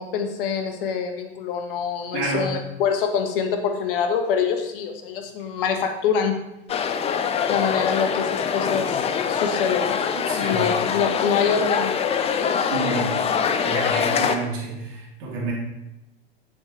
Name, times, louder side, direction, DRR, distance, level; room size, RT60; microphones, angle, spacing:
voice 1, 0.0-6.4 7.5-10.0 10.4-12.7, left 6 dB, 55° left, 5 dB, 1.4 m, -25 dB
voice 2, 2.1-2.5 10.3-10.6 12.7-13.3 13.6-15.5, right 3 dB, 55° right, -3 dB, 3.0 m, -29 dB
sound 1, 6.7-14.4, left 7 dB, 20° left, 0.5 m, -24 dB
8.5 x 7.4 x 3.3 m, 0.88 s
figure-of-eight pair, 90°, 32 cm